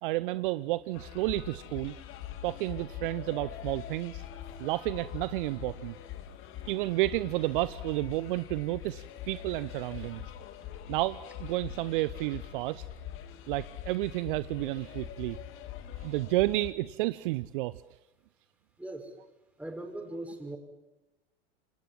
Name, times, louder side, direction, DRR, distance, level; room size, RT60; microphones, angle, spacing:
voice 1, 0.0-1.9 2.4-4.2 4.6-5.9 6.7-10.2 10.9-12.8 13.5-15.4 16.0-17.7, right 18 dB, 55° right, 16 dB, 0.9 m, -31 dB
sound 1, 0.9-16.7, left 11 dB, 40° left, 2.9 m, -43 dB
voice 2, 18.8-19.1 19.6-20.6, right 1 dB, 5° right, 4 dB, 6.4 m, -39 dB
28.5 x 26.5 x 7.6 m, 1.1 s
figure-of-eight pair, 90°, 31 cm